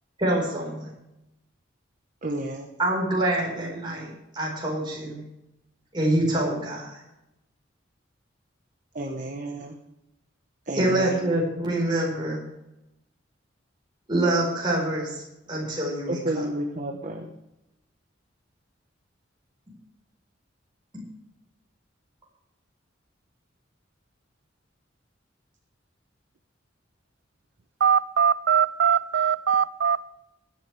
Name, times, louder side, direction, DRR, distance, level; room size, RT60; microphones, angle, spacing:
voice 1, 0.2-0.9 2.8-5.2 5.9-7.0 10.8-12.4 14.1-15.2 15.5-16.4, right 1 dB, 25° right, 4.6 m, -26 dB
voice 2, 2.2-2.7 8.9-9.8 10.7-11.3 11.6-11.7 16.1-17.3, right 1 dB, 40° right, 1.2 m, -31 dB
voice 3, 27.8-30.1, right 7 dB, 70° right, 0.5 m, -21 dB
20.5 x 10.5 x 3.4 m
head